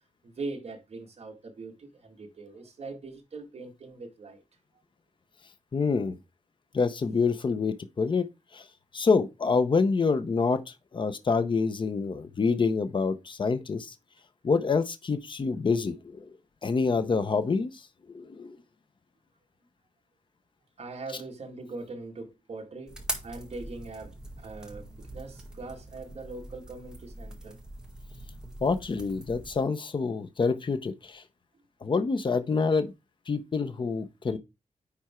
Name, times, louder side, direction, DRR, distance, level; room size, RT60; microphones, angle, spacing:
voice 1, 0.2-4.4 20.8-23.0 23.2-27.6, right 3 dB, 50° right, 2.0 m, -41 dB
voice 2, 5.7-6.1 6.7-8.3 8.5-8.7 8.9-10.6 10.9-13.9 14.4-16.3 16.6-17.7 18.1-18.6 28.6-31.2 31.8-32.9 33.3-34.4, left 4 dB, 40° left, 0.8 m, -27 dB
sound 1, 22.9-29.6, right 1 dB, 5° right, 1.7 m, -42 dB
9.7 x 3.5 x 4.4 m
wide cardioid pair, 145°, 13 cm